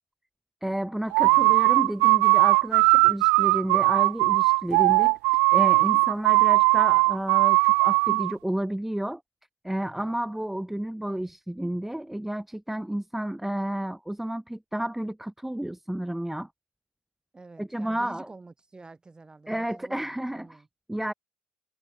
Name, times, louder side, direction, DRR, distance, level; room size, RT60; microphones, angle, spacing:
voice 1, 0.6-9.2 9.6-16.5 17.6-18.3 19.5-20.6 20.9-21.1, right 1 dB, 5° right, 2.2 m, -31 dB
sound 1, 1.1-8.3, right 37 dB, 75° right, 0.3 m, -19 dB
voice 2, 1.2-1.6 9.8-10.2 17.3-20.7, right 3 dB, 20° right, 7.1 m, -48 dB
hypercardioid pair, 55°, 4 cm